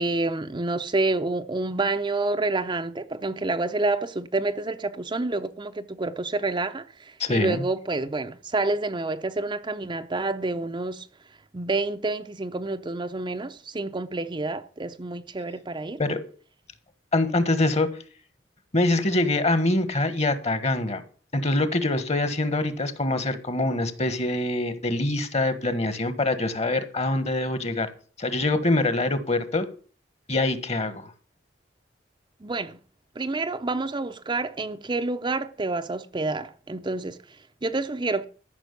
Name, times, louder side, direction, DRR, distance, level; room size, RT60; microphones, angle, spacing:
voice 1, 0.0-11.1 11.5-16.0 32.4-32.8 33.2-38.2, right 2 dB, 25° right, 0.7 m, -28 dB
voice 2, 7.2-7.6 16.0-16.2 17.1-17.9 18.7-21.0 21.3-27.9 28.2-29.7 30.3-31.1, left 2 dB, 35° left, 1.4 m, -24 dB
13.5 x 6.2 x 8.3 m
head